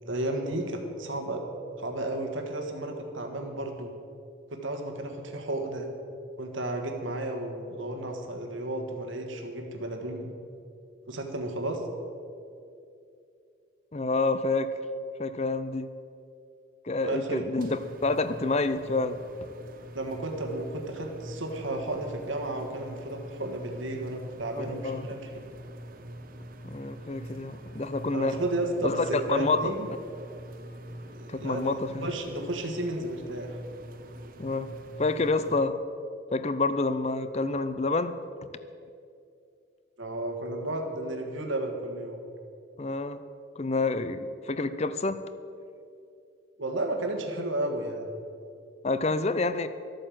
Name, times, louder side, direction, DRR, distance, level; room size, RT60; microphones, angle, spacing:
voice 1, 0.0-1.4 1.8-3.9 4.5-5.9 6.4-10.3 11.1-11.8 17.0-17.5 19.9-25.4 28.1-29.9 31.1-31.7 32.0-33.6 40.0-42.2 46.6-48.1, right 1 dB, 75° right, 3 dB, 1.6 m, -33 dB
voice 2, 13.9-14.7 15.2-15.9 16.8-19.2 24.6-25.1 26.6-28.4 28.8-29.6 31.3-32.1 34.4-34.7 35.0-35.7 36.3-38.2 42.8-43.2 43.6-44.2 44.5-45.2 48.8-49.7, left 3 dB, 35° left, 12 dB, 0.6 m, -28 dB
sound 1, 17.6-35.6, right 1 dB, 45° right, 0.9 m, -44 dB
13.5 x 9.0 x 7.6 m, 2.6 s
head